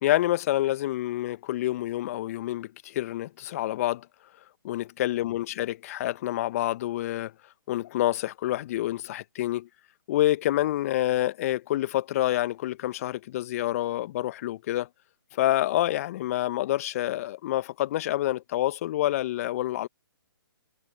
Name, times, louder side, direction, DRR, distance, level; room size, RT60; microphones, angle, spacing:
voice 1, 0.0-4.1 4.6-7.3 7.7-9.7 10.1-14.9 15.3-19.9, left 14 dB, 40° left, 1.4 m, -27 dB
figure-of-eight pair, 130°, 12 cm